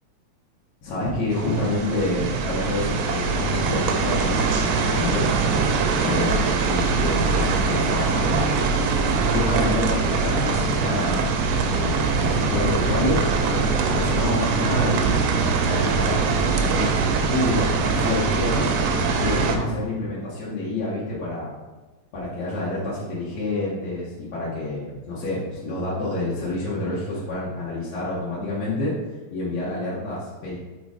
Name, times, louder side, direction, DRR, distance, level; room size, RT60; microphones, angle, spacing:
voice 1, 0.8-5.4 6.0-8.5 8.9-15.2 15.7-18.7 19.2-21.5 22.1-28.9 29.3-30.6, left 2 dB, 65° left, -8 dB, 2.2 m, -28 dB
sound 1, 1.3-19.6, right 4 dB, 75° right, 1.5 m, -22 dB
5.1 x 3.9 x 4.8 m, 1.2 s
omnidirectional pair, 3.4 m